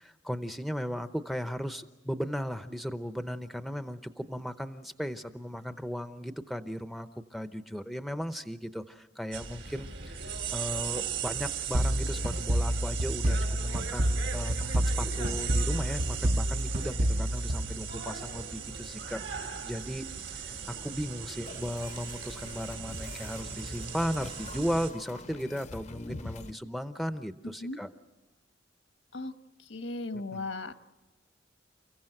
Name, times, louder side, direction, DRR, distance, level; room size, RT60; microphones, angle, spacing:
voice 1, 0.0-20.1 20.3-27.9 30.1-30.5, equal, ahead, 9 dB, 0.7 m, -36 dB
sound 1, 9.3-24.9, right 7 dB, 75° right, 3.2 m, -38 dB
sound 2, 11.7-18.4, equal, 45° right, 0.8 m, -29 dB
sound 3, 21.5-26.5, left 3 dB, 40° left, 0.7 m, -45 dB
voice 2, 29.7-30.7, left 2 dB, 80° left, 8 dB, 1.3 m, -36 dB
30.0 x 15.5 x 7.8 m, 1.1 s
head